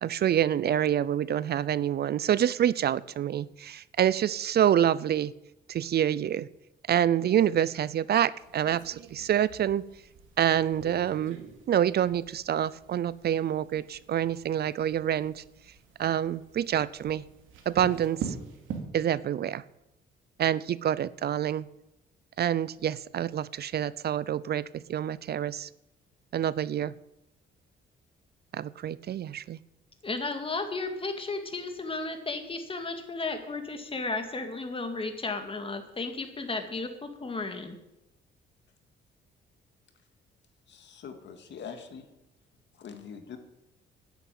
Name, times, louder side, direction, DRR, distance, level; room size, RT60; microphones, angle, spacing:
voice 1, 0.0-5.3 5.7-6.5 6.9-9.8 10.4-11.4 11.7-15.4 16.0-17.2 17.7-18.3 18.9-19.6 20.4-21.7 22.4-25.7 26.3-26.9 28.5-29.6, right 10 dB, 55° right, 19 dB, 0.5 m, -27 dB
sound 1, 8.4-18.8, right 6 dB, 80° right, 2.7 m, -44 dB
voice 2, 30.0-37.8, left 3 dB, 25° left, 6 dB, 2.3 m, -34 dB
voice 3, 40.7-42.1 42.8-43.4, left 7 dB, 65° left, 6 dB, 2.1 m, -43 dB
10.5 x 8.2 x 9.1 m, 0.89 s
cardioid pair, 90°, 20 cm